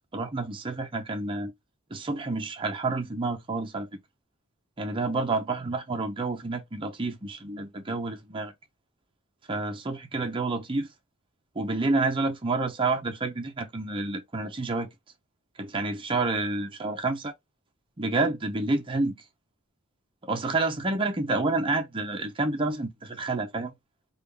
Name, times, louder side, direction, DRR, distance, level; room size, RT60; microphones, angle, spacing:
voice 1, 0.1-1.5 1.9-3.9 4.8-8.5 9.5-10.9 11.6-14.9 15.6-17.3 18.0-19.1 20.2-23.7, right 3 dB, 25° right, 0.5 m, -29 dB
3.5 x 2.3 x 3.3 m
head